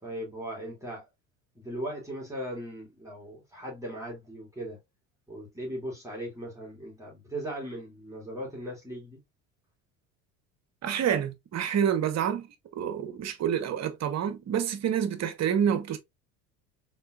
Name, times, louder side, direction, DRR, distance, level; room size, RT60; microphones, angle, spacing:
voice 1, 0.0-1.0 1.6-4.8 5.3-9.2, right 1 dB, 10° right, 2.6 m, -38 dB
voice 2, 10.8-12.5 12.7-16.0, right 8 dB, 45° right, 1.1 m, -28 dB
4.4 x 3.9 x 2.4 m
hypercardioid pair, 80°, 37 cm